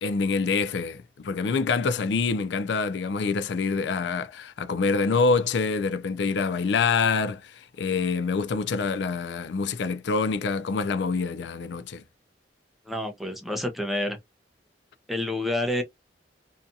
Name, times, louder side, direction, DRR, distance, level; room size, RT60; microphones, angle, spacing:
voice 1, 0.0-12.0, left 4 dB, 70° left, 0.4 m, -26 dB
voice 2, 12.9-14.2 15.1-15.8, left 1 dB, ahead, 0.5 m, -28 dB
2.6 x 2.3 x 2.6 m
head